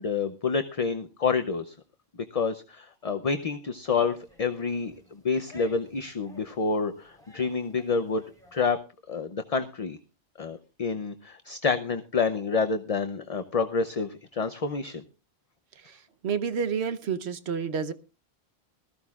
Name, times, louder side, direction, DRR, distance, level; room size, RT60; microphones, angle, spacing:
voice 1, 0.0-1.7 2.3-8.2 8.5-8.8 9.1-10.0 10.4-15.0, left 5 dB, 40° left, 0.7 m, -28 dB
sound 1, 3.7-8.7, left 3 dB, 5° left, 3.6 m, -55 dB
voice 2, 15.8-17.9, right 6 dB, 85° right, 1.2 m, -30 dB
20.0 x 14.0 x 2.4 m
omnidirectional pair, 1.1 m